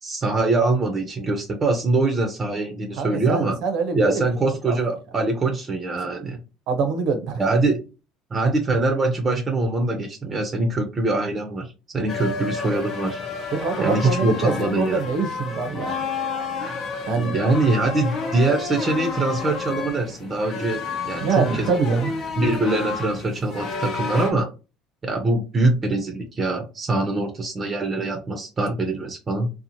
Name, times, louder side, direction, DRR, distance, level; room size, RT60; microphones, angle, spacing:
voice 1, 0.0-3.6 3.9-6.4 7.4-7.8 8.3-13.2 13.8-15.0 17.2-21.7 22.4-24.5 25.0-29.5, right 2 dB, 30° right, 0.6 m, -23 dB
voice 2, 3.0-4.2 4.7-4.8 6.7-7.4 13.5-16.0 17.1-17.4 21.2-22.2, right 4 dB, 70° right, 0.6 m, -24 dB
sound 1, 12.1-24.3, left 4 dB, 50° left, 0.7 m, -30 dB
2.7 x 2.0 x 2.9 m
supercardioid pair, 95°, 0 cm